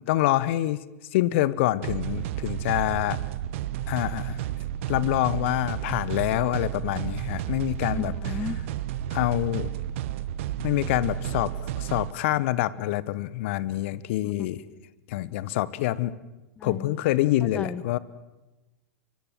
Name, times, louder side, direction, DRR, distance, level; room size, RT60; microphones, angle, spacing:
voice 1, 0.1-0.8 1.1-3.2 3.9-4.4 4.9-8.1 9.1-9.7 10.6-11.5 11.8-14.6 15.1-16.1 16.6-18.0, left 15 dB, 50° left, 18 dB, 1.1 m, -26 dB
sound 1, 1.8-12.1, right 12 dB, 50° right, 1.2 m, -32 dB
voice 2, 7.9-8.6 16.6-17.0 17.5-17.8, left 6 dB, 15° left, 17 dB, 0.8 m, -33 dB
25.0 x 24.0 x 7.6 m, 1.1 s
figure-of-eight pair, 95°, 8 cm